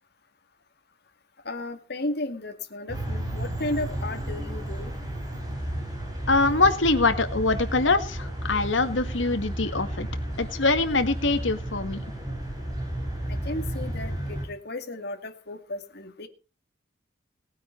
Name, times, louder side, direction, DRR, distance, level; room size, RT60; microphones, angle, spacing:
voice 1, 1.4-4.9 13.3-16.3, left 2 dB, 60° left, 5 dB, 2.1 m, -34 dB
sound 1, 2.9-14.4, right 1 dB, 20° right, 5.0 m, -33 dB
voice 2, 6.3-10.1 10.4-12.0, left 3 dB, 80° left, 9 dB, 1.9 m, -23 dB
19.0 x 9.3 x 4.5 m, 0.33 s
head